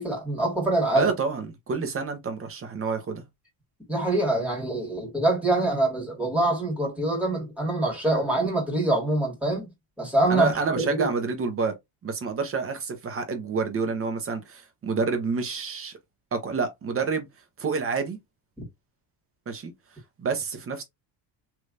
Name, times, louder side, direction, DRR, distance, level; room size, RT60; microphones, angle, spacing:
voice 1, 0.0-1.1 3.9-9.7 10.0-11.1, right 2 dB, 5° right, 2.0 m, -25 dB
voice 2, 0.9-3.2 10.3-11.7 12.0-15.9 16.3-17.3 17.6-18.2 19.5-19.7 20.2-20.8, right 4 dB, 30° right, 0.9 m, -28 dB
3.3 x 3.0 x 2.5 m
cardioid pair, 120°, 48 cm